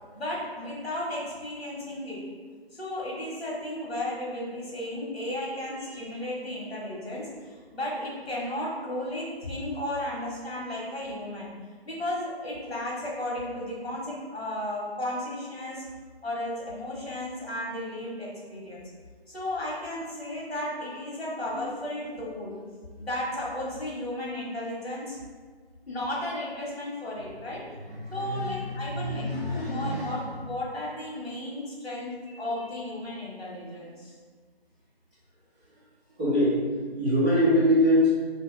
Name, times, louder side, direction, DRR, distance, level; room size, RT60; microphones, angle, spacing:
voice 1, 0.1-2.3 2.7-11.5 11.8-15.8 16.2-18.9 19.3-22.6 23.0-25.2 25.9-27.7 28.1-29.2 29.5-34.2, left 1 dB, 70° left, -5 dB, 1.5 m, -34 dB
voice 2, 5.5-6.0 19.9-20.0 21.5-21.7 27.5-30.4 32.2-32.7 36.2-36.6 37.0-38.1, equal, 5° right, -23 dB, 1.1 m, -26 dB
3.2 x 2.8 x 3.2 m, 1.5 s
figure-of-eight pair, 175°, 31 cm